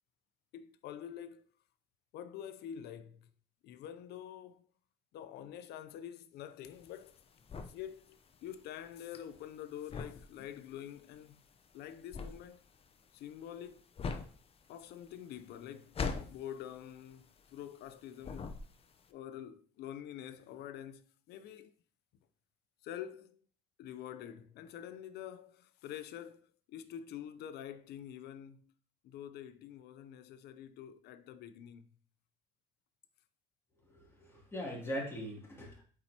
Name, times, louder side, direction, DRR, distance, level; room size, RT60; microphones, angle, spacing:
voice 1, 0.5-1.5 2.1-3.3 3.6-4.7 5.1-7.2 7.7-11.4 11.7-12.6 13.1-13.8 14.7-16.0 16.3-18.5 19.1-21.7 22.8-23.4 23.8-28.7 29.0-31.9, left 10 dB, 75° left, 0.5 m, -47 dB
sound 1, 6.7-17.9 18.2-19.1, left 5 dB, 35° left, 0.6 m, -42 dB
voice 2, 33.8-35.8, equal, 15° left, 2.5 m, -41 dB
8.4 x 4.4 x 2.8 m
cardioid pair, 110°, 17 cm